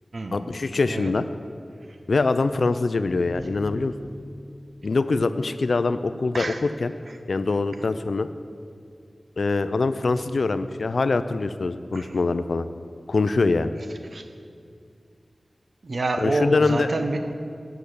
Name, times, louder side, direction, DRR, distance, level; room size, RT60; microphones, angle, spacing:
voice 1, 0.3-1.3 2.1-3.9 4.8-6.9 7.3-8.3 9.4-12.7 13.1-13.7 16.2-16.9, left 3 dB, 80° left, 12 dB, 0.4 m, -23 dB
sound 1, 3.1-6.8, left 1 dB, 40° right, 2.1 m, -44 dB
voice 2, 15.8-17.3, right 2 dB, 65° right, 6 dB, 0.8 m, -27 dB
8.6 x 7.0 x 8.1 m, 2.4 s
wide cardioid pair, 55°, 0 cm